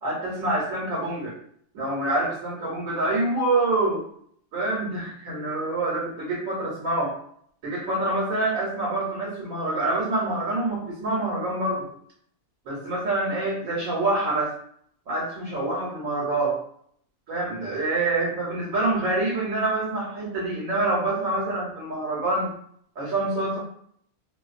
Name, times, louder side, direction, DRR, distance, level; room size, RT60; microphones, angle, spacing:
voice 1, 0.0-1.3 1.7-4.0 4.5-7.2 7.6-11.9 12.6-14.6 15.1-16.6 17.3-22.5 23.0-23.6, right 2 dB, 80° right, -4 dB, 1.1 m, -26 dB
2.5 x 2.2 x 2.4 m, 0.65 s
omnidirectional pair, 1.4 m